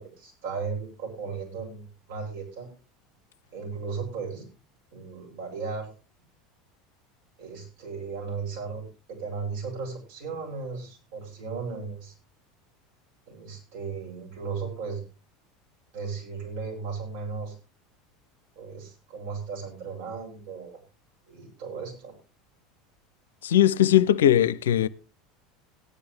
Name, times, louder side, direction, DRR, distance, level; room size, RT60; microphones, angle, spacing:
voice 1, 0.0-2.7 3.5-4.5 4.9-5.9 7.4-12.1 13.3-15.0 15.9-17.5 18.5-20.8 21.3-22.1, right 5 dB, 65° right, 8.0 m, -36 dB
voice 2, 23.4-24.9, left 11 dB, 80° left, 0.5 m, -19 dB
17.5 x 10.5 x 3.4 m
hypercardioid pair, 80°, 0 cm